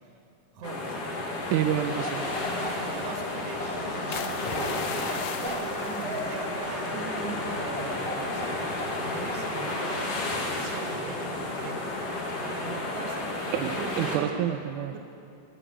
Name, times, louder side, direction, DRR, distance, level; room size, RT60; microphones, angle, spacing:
voice 1, 0.5-1.0 2.8-11.9 12.5-13.3 13.7-14.5 14.9-15.0, right 4 dB, 60° right, 2 dB, 2.1 m, -41 dB
sound 1, 0.6-14.2, left 2 dB, 55° left, 2.5 m, -32 dB
voice 2, 1.5-2.2 13.5-15.0, right 11 dB, 85° right, 7 dB, 2.1 m, -28 dB
Bark, 2.0-9.0 9.3-9.5, equal, 5° left, 1.5 m, -37 dB
sound 2, 4.1-8.5 9.0-9.3, left 10 dB, 75° left, 1.9 m, -41 dB
18.5 x 6.9 x 9.9 m, 2.7 s
omnidirectional pair, 3.5 m